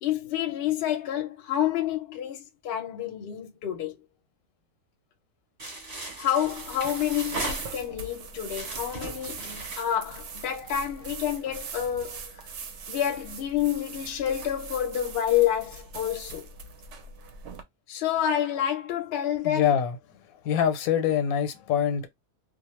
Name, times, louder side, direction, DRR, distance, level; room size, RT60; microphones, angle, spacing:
voice 1, 0.0-3.9 6.2-12.4 12.9-16.5 17.9-19.7, left 10 dB, 60° left, 0.7 m, -28 dB
sound 1, 5.6-8.1 8.5-10.7, right 2 dB, 35° right, 0.9 m, -38 dB
sound 2, 6.4-17.6, right 5 dB, 65° right, 0.8 m, -41 dB
voice 2, 19.4-20.0 20.4-22.1, left 8 dB, 85° left, 1.0 m, -24 dB
2.3 x 2.1 x 3.0 m
omnidirectional pair, 1.4 m